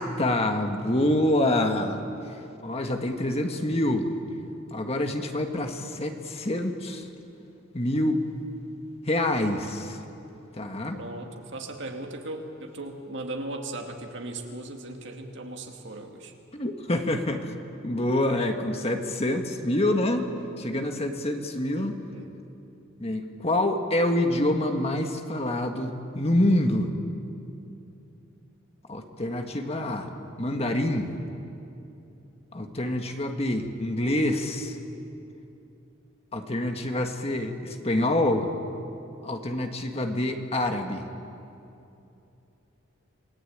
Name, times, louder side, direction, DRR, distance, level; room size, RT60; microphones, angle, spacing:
voice 1, 0.0-2.0 2.6-4.1 4.7-7.1 7.7-8.2 9.0-10.0 10.5-11.0 16.5-17.6 17.8-20.3 20.6-22.0 23.0-26.9 28.9-30.1 30.4-31.1 32.5-34.8 36.3-38.5 39.2-41.0, left 1 dB, 30° left, 5 dB, 1.6 m, -26 dB
voice 2, 5.8-6.1 10.9-16.3 22.1-22.4, right 2 dB, 60° right, 3 dB, 2.4 m, -38 dB
28.0 x 19.5 x 8.8 m, 2.8 s
head